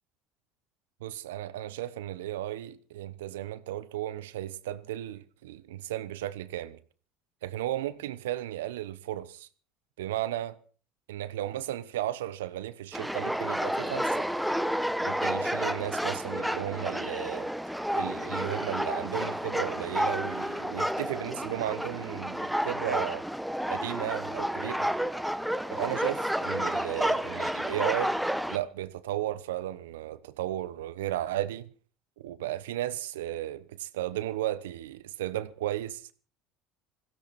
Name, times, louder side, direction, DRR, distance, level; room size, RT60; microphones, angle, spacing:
voice 1, 1.0-6.8 7.4-9.5 10.0-10.6 11.1-14.3 15.0-17.5 17.9-23.2 23.7-24.9 25.7-28.1 28.5-31.7 32.2-36.1, right 13 dB, 85° right, 1.0 m, -34 dB
sound 1, 12.9-28.6, equal, ahead, 1.0 m, -31 dB
20.0 x 16.0 x 4.3 m
hypercardioid pair, 85°, 0 cm